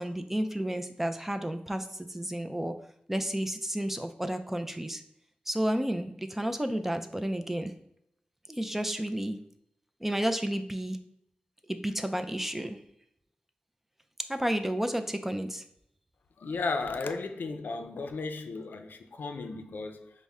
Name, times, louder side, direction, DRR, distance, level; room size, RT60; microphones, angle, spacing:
voice 1, 0.0-2.7 3.1-5.0 5.5-7.7 8.5-9.4 10.0-11.0 11.7-12.8 14.3-15.6, right 1 dB, 10° right, 0.3 m, -31 dB
voice 2, 16.4-20.1, left 3 dB, 80° left, 0.4 m, -35 dB
5.3 x 2.1 x 3.5 m
wide cardioid pair, 125°, 3 cm